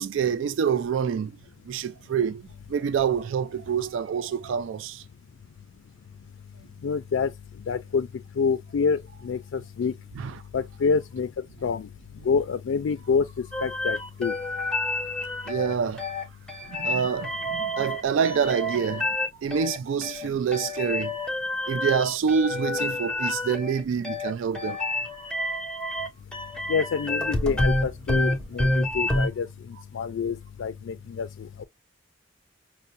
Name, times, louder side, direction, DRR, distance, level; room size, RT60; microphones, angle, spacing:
voice 1, 0.0-1.4 1.7-5.0 10.2-10.4 15.5-16.1 16.7-21.2 21.7-24.8, right 7 dB, 80° right, 0.3 m, -27 dB
voice 2, 6.8-7.3 7.7-8.1 8.3-9.9 10.5-11.9 12.2-14.3 26.7-31.6, left 5 dB, 80° left, 0.4 m, -27 dB
sound 1, 13.5-29.3, left 1 dB, 5° left, 0.7 m, -28 dB
5.5 x 2.1 x 2.5 m
head